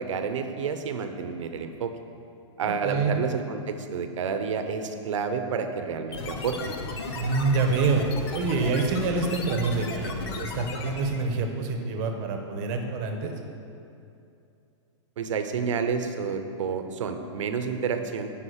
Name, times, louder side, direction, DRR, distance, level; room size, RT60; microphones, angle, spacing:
voice 1, 0.0-1.9 2.6-6.7 15.2-18.3, right 6 dB, 75° right, 7 dB, 0.9 m, -29 dB
voice 2, 2.6-3.1 7.1-8.0 8.3-13.3, right 4 dB, 35° right, 4 dB, 1.1 m, -26 dB
sound 1, 6.1-11.3, left 3 dB, 55° left, 1.0 m, -35 dB
10.0 x 5.3 x 6.5 m, 2.7 s
hypercardioid pair, 160°, 16 cm